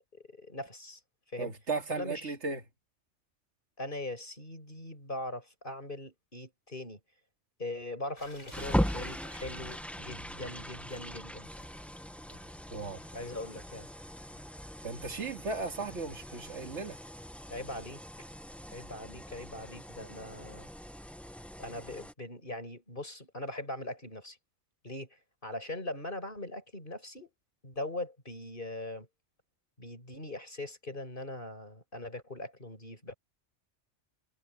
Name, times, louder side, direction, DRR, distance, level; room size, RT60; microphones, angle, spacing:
voice 1, 0.1-1.0 1.3-1.5 1.9-2.3 3.8-7.0 7.6-11.5 13.1-13.9 17.5-18.0 18.7-20.7 21.6-24.4 24.8-25.2 25.4-27.3 27.6-29.1 29.8-33.1, left 2 dB, 45° left, 6.3 m, -41 dB
voice 2, 1.4-2.6 12.7-13.0 14.8-17.0, right 4 dB, 75° right, 2.2 m, -36 dB
sound 1, 8.2-14.6, left 2 dB, 75° left, 6.8 m, -57 dB
sound 2, 8.5-22.1, equal, ahead, 0.6 m, -39 dB
omnidirectional pair, 1.2 m